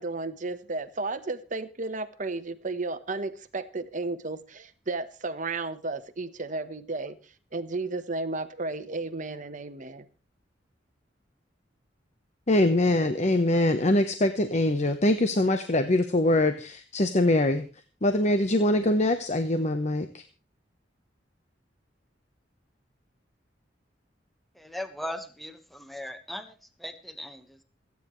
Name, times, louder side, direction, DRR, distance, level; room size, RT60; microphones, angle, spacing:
voice 1, 0.0-10.1, right 3 dB, 45° right, 1.1 m, -33 dB
voice 2, 12.5-17.7 18.0-20.2, left 1 dB, 40° left, 1.0 m, -23 dB
voice 3, 24.6-26.5 26.8-27.6, left 1 dB, ahead, 1.4 m, -38 dB
28.0 x 9.6 x 3.2 m
head